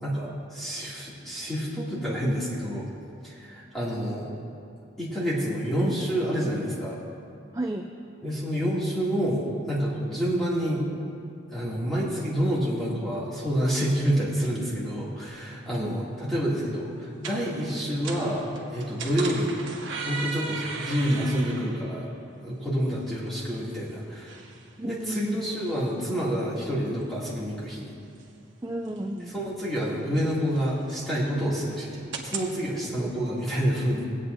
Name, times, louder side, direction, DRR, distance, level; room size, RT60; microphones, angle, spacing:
voice 1, 0.0-2.9 3.2-4.3 5.0-7.0 8.2-10.8 11.5-19.5 20.0-22.1 22.4-24.4 24.8-27.9 29.3-34.0, equal, ahead, -9 dB, 2.4 m, -28 dB
voice 2, 7.5-7.9 15.8-16.0 24.8-25.4 28.6-29.3 32.8-33.1, right 1 dB, 15° right, 3 dB, 0.4 m, -33 dB
sound 1, 15.3-32.5, right 4 dB, 75° right, 1.1 m, -41 dB
19.5 x 8.7 x 2.6 m, 2.6 s
head